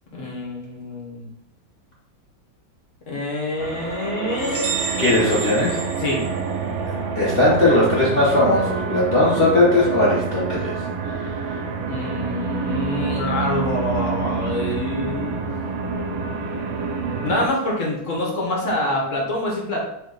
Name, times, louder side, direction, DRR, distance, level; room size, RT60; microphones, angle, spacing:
voice 1, 0.1-1.3 3.1-4.7 6.0-6.2 11.9-15.4 17.2-19.9, left 1 dB, 50° left, -2 dB, 1.2 m, -26 dB
sound 1, 3.6-17.5, right 4 dB, 80° right, 1.3 m, -27 dB
sound 2, 4.4-7.0, right 5 dB, 55° right, 0.4 m, -30 dB
voice 2, 5.0-5.8 7.1-10.7 11.2-11.3, left 2 dB, 75° left, -6 dB, 0.5 m, -18 dB
3.3 x 2.8 x 3.7 m, 0.77 s
omnidirectional pair, 2.1 m